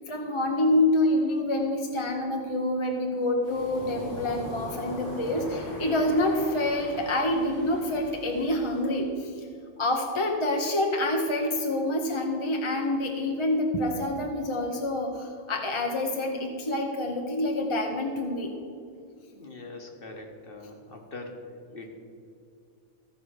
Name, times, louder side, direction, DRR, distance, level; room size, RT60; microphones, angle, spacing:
voice 1, 0.1-9.5 9.8-18.5, left 1 dB, 30° left, 1 dB, 0.8 m, -27 dB
Waves surf, 3.4-8.9, left 1 dB, 85° left, 2.5 m, -40 dB
voice 2, 19.3-21.9, left 2 dB, 50° left, 2 dB, 1.5 m, -42 dB
14.5 x 4.9 x 6.4 m, 2.4 s
omnidirectional pair, 1.2 m